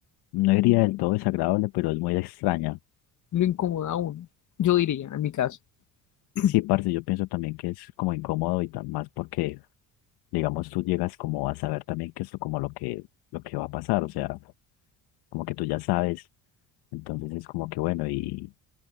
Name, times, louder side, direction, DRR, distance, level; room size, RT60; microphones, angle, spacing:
voice 1, 0.3-2.8 6.5-9.6 10.3-13.1 13.3-14.4 15.3-16.3 16.9-18.5, left 20 dB, 80° left, 1.0 m, -27 dB
voice 2, 3.3-4.3 4.6-5.6 6.3-6.5, left 12 dB, 50° left, 1.3 m, -25 dB
open air
supercardioid pair, 75°, 38 cm